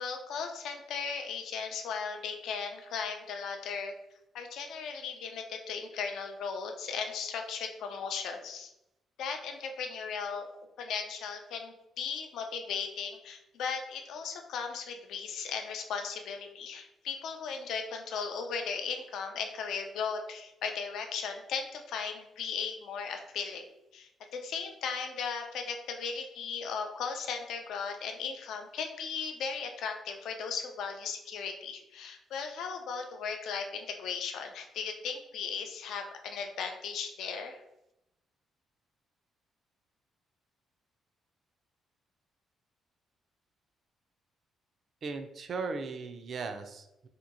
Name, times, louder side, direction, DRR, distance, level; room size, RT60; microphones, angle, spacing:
voice 1, 0.0-4.0 4.3-8.7 9.2-10.5 10.8-23.6 23.9-37.6, left 6 dB, 80° left, 5 dB, 0.4 m, -37 dB
voice 2, 45.0-47.1, right 4 dB, 55° right, 8 dB, 0.3 m, -37 dB
2.8 x 2.5 x 2.5 m, 0.88 s
cardioid pair, 90°, 0 cm